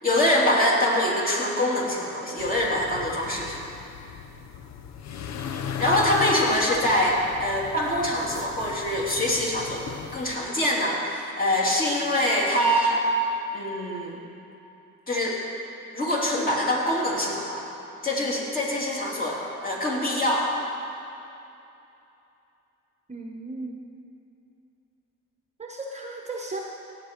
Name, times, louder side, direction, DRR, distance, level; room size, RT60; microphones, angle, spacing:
voice 1, 0.0-3.6 5.8-9.8 10.1-13.0 13.5-14.2 15.1-15.4 15.9-17.6 18.0-20.5, left 1 dB, 30° left, -4 dB, 3.1 m, -24 dB
sound 1, 2.4-10.4, left 7 dB, 65° left, 0.7 m, -37 dB
voice 2, 23.1-23.8 25.6-26.6, right 2 dB, 20° right, 0 dB, 1.1 m, -35 dB
17.0 x 8.4 x 4.6 m, 2.8 s
cardioid pair, 90°, 30 cm